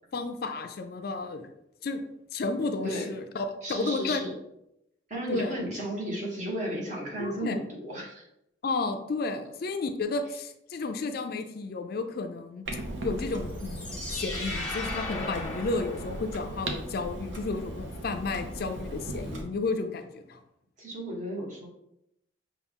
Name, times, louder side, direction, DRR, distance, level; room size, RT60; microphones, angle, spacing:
voice 1, 0.1-1.5 1.8-2.0 2.3-4.2 5.3-5.6 7.2-7.6 8.6-12.6 13.0-20.4, left 3 dB, 50° left, 7 dB, 0.4 m, -32 dB
voice 2, 3.6-4.3 5.1-8.3 20.8-21.7, right 1 dB, 40° right, -3 dB, 1.2 m, -34 dB
Clock, 12.6-19.4, right 1 dB, 75° right, 0.8 m, -38 dB
sound 1, 13.5-16.6, left 2 dB, 5° left, 0.8 m, -37 dB
5.8 x 2.3 x 3.5 m, 0.82 s
head